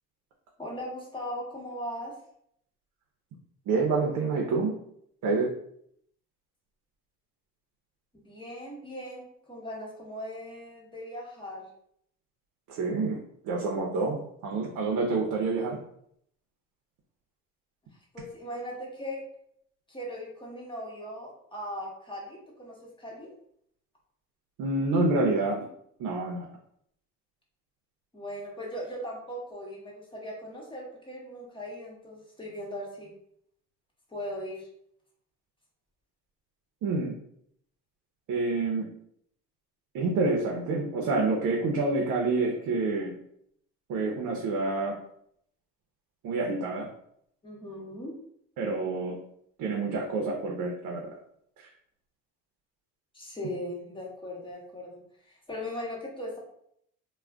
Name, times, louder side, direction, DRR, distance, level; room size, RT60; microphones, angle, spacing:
voice 1, 0.6-2.2 8.1-11.7 18.1-19.3 19.9-23.3 28.1-33.1 34.1-34.7 47.4-48.2 53.1-55.0 55.3-56.4, equal, 15° left, -3 dB, 0.9 m, -39 dB
voice 2, 3.7-4.8 5.2-5.5 12.7-15.8 24.6-25.7 26.0-26.5 36.8-37.1 38.3-38.9 39.9-43.2 43.9-45.0 46.2-46.9 48.6-49.2 49.6-51.1 51.6-51.7, right 3 dB, 75° right, 0 dB, 0.6 m, -28 dB
2.3 x 2.1 x 3.3 m, 0.70 s
cardioid pair, 110°, 31 cm